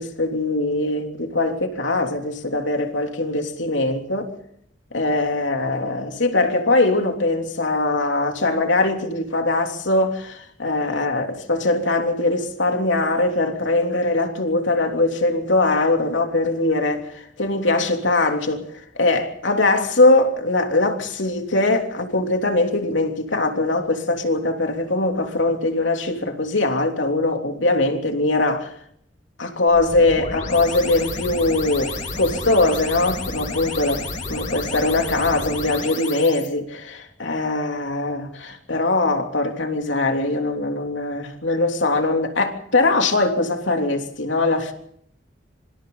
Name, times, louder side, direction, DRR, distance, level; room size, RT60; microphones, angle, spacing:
voice 1, 0.0-4.3 4.9-28.7 29.4-44.7, left 2 dB, 80° left, 3.2 m, -21 dB
sound 1, 29.7-36.5, left 3 dB, 40° left, 4.1 m, -31 dB
26.0 x 25.5 x 4.0 m
head